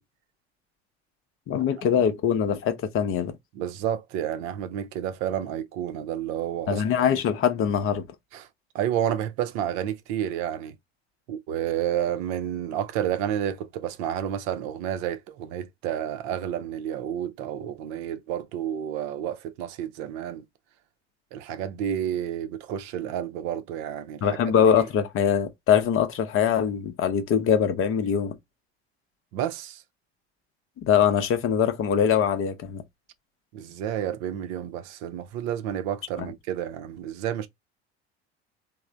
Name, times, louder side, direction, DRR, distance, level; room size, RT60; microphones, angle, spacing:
voice 1, 1.5-3.4 6.7-8.1 24.2-28.4 30.8-32.8 36.2-36.3, left 8 dB, 40° left, 0.7 m, -23 dB
voice 2, 3.5-6.8 7.1-7.2 8.3-8.5 8.7-10.7 11.3-20.4 21.3-24.3 29.3-29.8 33.5-37.5, right 10 dB, 55° right, 0.6 m, -30 dB
3.2 x 2.1 x 3.8 m
figure-of-eight pair, 65°, 33 cm